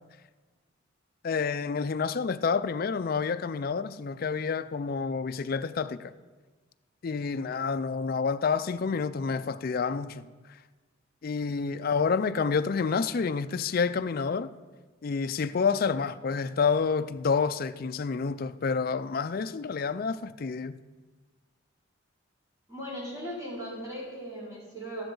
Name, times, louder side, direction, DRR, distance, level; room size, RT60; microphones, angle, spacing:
voice 1, 1.2-6.1 7.0-10.3 11.2-14.5 15.0-20.8, left 5 dB, 50° left, 0.4 m, -28 dB
voice 2, 22.7-25.0, equal, 15° right, 4.8 m, -38 dB
14.0 x 12.0 x 3.9 m
head